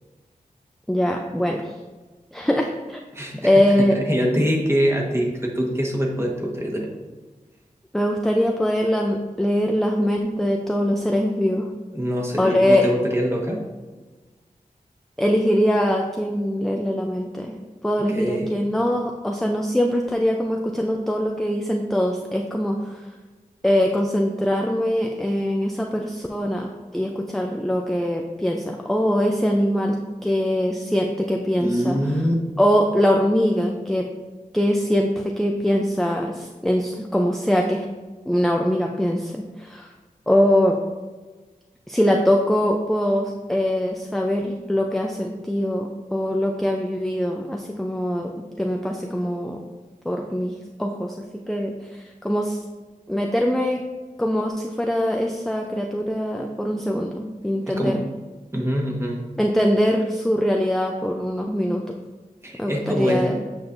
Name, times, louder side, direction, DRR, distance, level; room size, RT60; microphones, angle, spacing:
voice 1, 0.9-1.8 2.3-3.0 3.4-4.0 7.9-11.7 12.4-12.9 15.2-17.6 17.8-23.1 23.6-30.0 30.2-32.0 32.6-34.1 34.5-37.8 38.3-39.9 40.3-40.8 41.9-48.3 48.6-49.6 50.0-50.5 50.8-52.6 53.1-53.8 54.2-58.0 59.4-61.8 62.6-63.4, equal, ahead, 1 dB, 0.5 m, -22 dB
voice 2, 3.1-3.6 3.9-6.9 11.9-13.6 18.1-18.5 31.6-32.3 57.7-58.0 58.5-59.2 62.4-63.4, equal, 20° right, -1 dB, 1.4 m, -24 dB
8.0 x 5.2 x 2.6 m, 1.3 s
wide cardioid pair, 60°, 14 cm